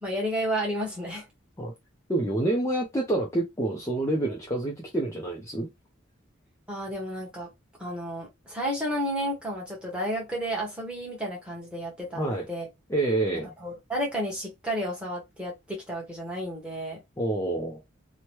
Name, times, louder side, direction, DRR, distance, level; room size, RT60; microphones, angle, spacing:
voice 1, 0.0-1.3 6.7-7.5 7.8-12.7 13.6-17.0, equal, 5° right, 1.0 m, -32 dB
voice 2, 2.1-5.7 12.2-12.5 12.9-13.5 17.2-17.8, right 2 dB, 15° left, 0.4 m, -27 dB
3.0 x 2.1 x 2.9 m
head